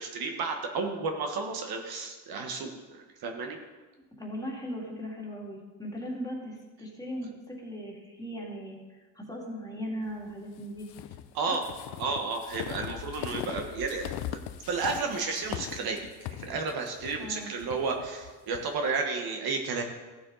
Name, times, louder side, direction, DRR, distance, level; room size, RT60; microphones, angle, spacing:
voice 1, 0.0-3.6 11.3-11.6 12.0-14.4 14.7-19.8, right 4 dB, 60° right, 4 dB, 1.5 m, -32 dB
voice 2, 4.2-8.8 9.1-10.9 11.5-11.6 17.2-17.5, equal, 10° left, -2 dB, 2.5 m, -38 dB
sound 1, 10.8-18.7, left 12 dB, 70° left, 0.7 m, -40 dB
15.0 x 7.1 x 4.1 m, 1.3 s
cardioid pair, 115°, 41 cm